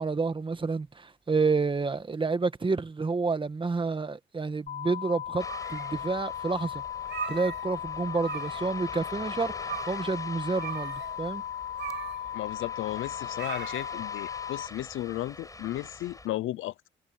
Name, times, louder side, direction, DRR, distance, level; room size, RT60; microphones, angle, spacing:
voice 1, 0.0-6.8 7.3-11.4, right 4 dB, 25° right, 1.7 m, -29 dB
sound 1, 4.7-14.7, left 10 dB, 40° left, 3.7 m, -37 dB
sound 2, 5.3-6.1 6.5-6.6 7.0-8.8 9.1-9.2 9.6-10.1 10.6-14.1, right 7 dB, 60° right, 2.5 m, -40 dB
Ocean, 5.4-16.3, left 2 dB, 15° left, 5.3 m, -45 dB
voice 2, 12.3-16.9, left 15 dB, 80° left, 0.6 m, -34 dB
cardioid pair, 90°, 20 cm